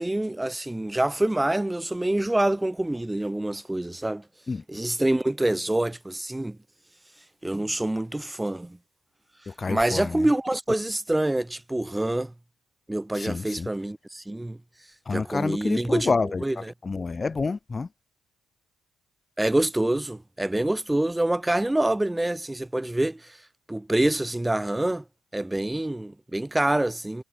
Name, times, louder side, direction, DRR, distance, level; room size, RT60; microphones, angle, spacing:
voice 1, 0.0-4.2 4.7-6.6 7.4-8.8 9.7-12.3 12.9-14.6 15.1-16.1 16.4-16.5 19.4-23.4 23.7-25.0 25.3-27.2, right 1 dB, 10° right, 1.3 m, -26 dB
voice 2, 9.5-10.3 13.1-13.7 15.0-17.9, left 4 dB, 30° left, 4.4 m, -29 dB
cardioid pair, 90°, 0 cm